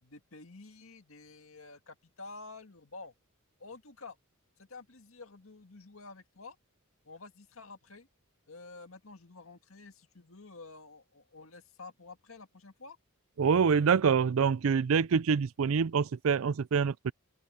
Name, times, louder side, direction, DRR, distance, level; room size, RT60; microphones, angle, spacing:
voice 1, 0.0-3.1 3.6-4.2 4.6-6.6 7.0-8.1 8.5-13.0, left 3 dB, 70° left, 2.0 m, -50 dB
voice 2, 13.4-17.1, right 6 dB, 70° right, 0.4 m, -26 dB
head